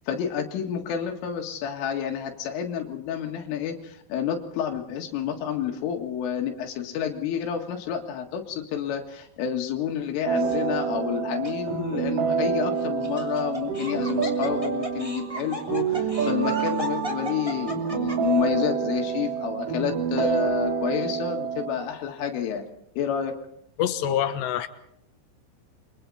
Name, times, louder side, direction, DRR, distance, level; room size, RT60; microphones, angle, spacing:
voice 1, 0.1-22.6 23.0-23.3, left 8 dB, 85° left, 3 dB, 4.5 m, -29 dB
sound 1, 10.2-21.9, right 6 dB, 50° right, 3.6 m, -27 dB
Laughter, 10.4-10.8 11.4-11.5 12.8-18.4, equal, 10° right, 2.3 m, -36 dB
voice 2, 23.8-24.7, left 10 dB, 70° left, 8 dB, 3.3 m, -25 dB
29.5 x 24.0 x 4.2 m, 0.72 s
omnidirectional pair, 5.6 m